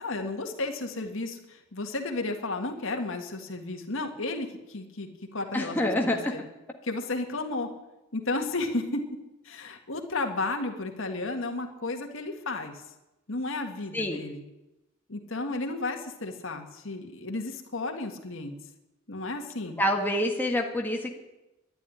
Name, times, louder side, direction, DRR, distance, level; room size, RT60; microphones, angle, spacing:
voice 1, 0.0-5.8 6.0-6.4 6.8-7.7 8.1-9.0 9.5-12.8 13.3-14.4 15.1-18.6 19.1-19.8, left 2 dB, 65° left, 4 dB, 1.9 m, -33 dB
voice 2, 5.5-6.3 13.9-14.2 19.8-21.1, left 1 dB, 10° left, 0 dB, 1.7 m, -27 dB
11.5 x 11.5 x 10.0 m, 0.98 s
head